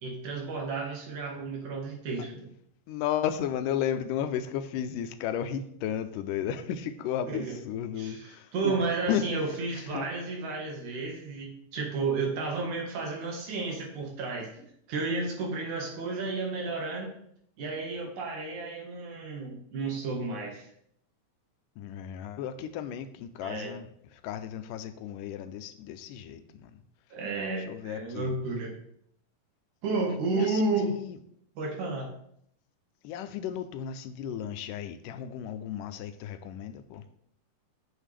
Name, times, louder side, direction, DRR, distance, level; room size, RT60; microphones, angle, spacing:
voice 1, 0.0-2.5 7.2-7.5 8.0-8.2 8.5-17.1 17.6-20.7 23.4-23.7 27.1-28.7 29.8-30.9 31.6-32.1, right 4 dB, 65° right, 0 dB, 3.0 m, -32 dB
voice 2, 2.9-10.1 21.8-26.8 27.6-28.4 30.3-31.2 33.0-37.1, left 9 dB, 90° left, 10 dB, 2.2 m, -34 dB
9.2 x 6.2 x 3.4 m, 0.69 s
omnidirectional pair, 3.8 m